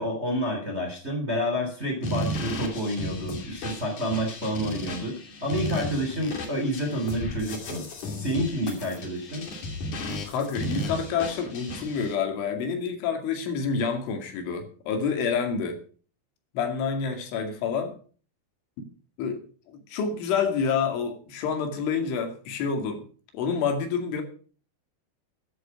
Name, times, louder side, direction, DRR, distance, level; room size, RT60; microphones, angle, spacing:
voice 1, 0.0-7.8 8.2-9.5, equal, 15° right, 2 dB, 2.7 m, -29 dB
sound 1, 2.0-12.1, left 1 dB, 45° left, 3.7 m, -34 dB
voice 2, 10.3-15.8 16.5-17.9 19.2-19.4 19.7-23.0 23.3-24.2, left 6 dB, 75° left, 5 dB, 4.7 m, -28 dB
14.0 x 10.5 x 5.9 m, 0.41 s
omnidirectional pair, 5.6 m